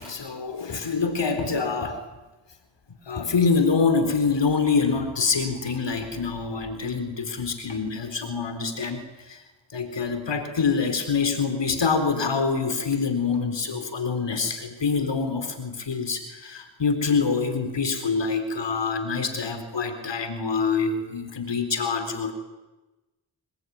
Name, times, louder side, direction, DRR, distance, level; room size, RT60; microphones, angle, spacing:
voice 1, 0.0-2.0 3.1-9.4 9.7-22.3, left 5 dB, 60° left, 8 dB, 4.2 m, -25 dB
27.5 x 22.5 x 9.7 m, 1.1 s
cardioid pair, 70°, 47 cm